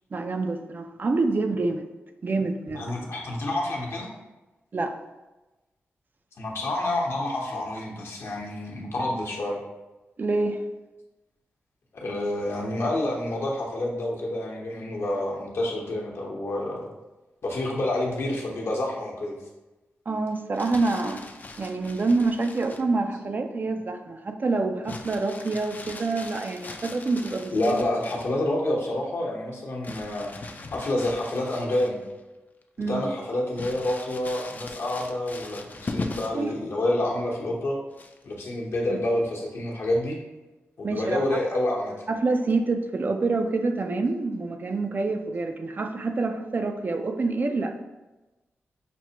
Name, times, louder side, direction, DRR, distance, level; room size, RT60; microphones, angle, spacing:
voice 1, 0.1-1.9 2.2-2.9 4.7-5.0 10.2-10.6 20.1-21.2 21.6-27.7 32.8-33.0 36.3-36.5 38.9-39.0 40.8-41.2 42.1-47.8, right 3 dB, 40° right, 6 dB, 0.3 m, -27 dB
voice 2, 2.7-4.1 6.4-9.6 11.9-16.9 17.4-19.4 27.5-30.3 30.7-32.0 32.9-37.8 38.2-40.2 40.8-41.9, left 1 dB, 65° left, -3 dB, 0.9 m, -28 dB
Crumpling crinkling, 20.4-22.9 24.8-28.4 29.8-32.2 32.6-32.7 33.6-36.5 37.9-38.4, left 3 dB, 40° left, 0.4 m, -40 dB
5.8 x 2.1 x 2.8 m, 1.1 s
cardioid pair, 80°, 5 cm